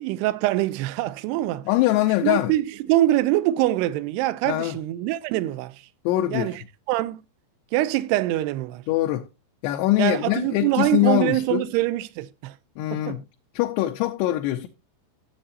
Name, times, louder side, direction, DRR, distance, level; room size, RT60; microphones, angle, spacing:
voice 1, 0.0-1.6 2.2-5.8 6.3-6.6 6.9-7.2 7.7-8.8 10.0-12.6 12.9-13.2, right 15 dB, 80° right, 2.5 m, -24 dB
voice 2, 1.7-2.5 4.5-4.8 6.1-6.6 8.9-9.3 9.6-11.7 12.8-13.2 13.5-14.7, left 16 dB, 80° left, 2.8 m, -23 dB
12.5 x 7.7 x 2.6 m
omnidirectional pair, 5.2 m